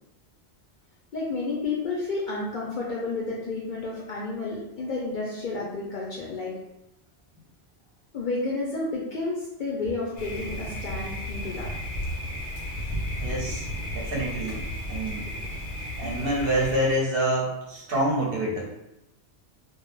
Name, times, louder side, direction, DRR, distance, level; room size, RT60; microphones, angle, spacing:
voice 1, 1.1-6.5 8.1-11.7, left 3 dB, 55° left, -5 dB, 0.6 m, -31 dB
Thunder, 10.2-16.9, equal, 90° left, 0.9 m, -33 dB
voice 2, 13.2-13.7 13.9-14.6 14.9-15.2 16.0-18.7, right 1 dB, 60° right, -3 dB, 0.8 m, -26 dB
2.3 x 2.0 x 3.0 m, 0.87 s
omnidirectional pair, 1.2 m